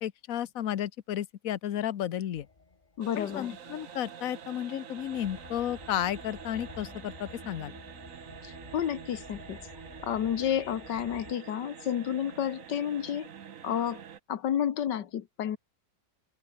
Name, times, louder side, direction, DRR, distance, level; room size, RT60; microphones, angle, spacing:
voice 1, 0.0-2.5 3.2-7.7, left 11 dB, 60° left, 1.2 m, -33 dB
sound 1, 2.3-11.3, left 3 dB, 25° left, 1.7 m, -51 dB
voice 2, 3.0-3.6 8.4-9.7 10.0-13.3 13.6-14.0 14.3-15.6, left 9 dB, 90° left, 1.8 m, -31 dB
sound 2, 3.0-14.2, right 8 dB, 55° right, 1.4 m, -47 dB
sound 3, 6.4-12.2, right 3 dB, 75° right, 5.1 m, -61 dB
omnidirectional pair, 1.8 m